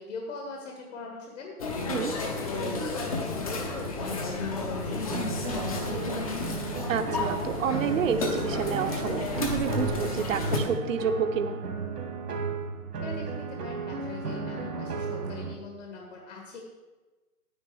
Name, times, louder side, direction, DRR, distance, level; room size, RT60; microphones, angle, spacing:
voice 1, 0.0-6.3 13.0-16.6, left 3 dB, 50° left, 1 dB, 1.8 m, -41 dB
sound 1, 1.6-10.6, left 3 dB, 25° left, 0.8 m, -32 dB
sound 2, 5.1-15.5, right 4 dB, 80° right, 1.7 m, -34 dB
voice 2, 6.9-11.6, right 6 dB, 55° right, 8 dB, 0.9 m, -29 dB
9.6 x 8.5 x 4.8 m, 1.2 s
hypercardioid pair, 160°, 46 cm